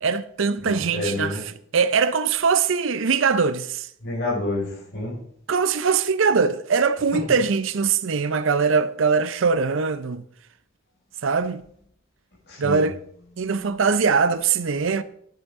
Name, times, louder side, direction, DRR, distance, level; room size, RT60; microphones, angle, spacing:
voice 1, 0.0-3.9 5.5-10.2 11.2-11.6 12.6-13.0 13.4-15.0, right 5 dB, 70° right, 0.5 m, -22 dB
voice 2, 0.6-1.4 4.0-5.1 12.5-12.8, left 2 dB, 55° left, 5.2 m, -28 dB
11.5 x 10.5 x 3.6 m
head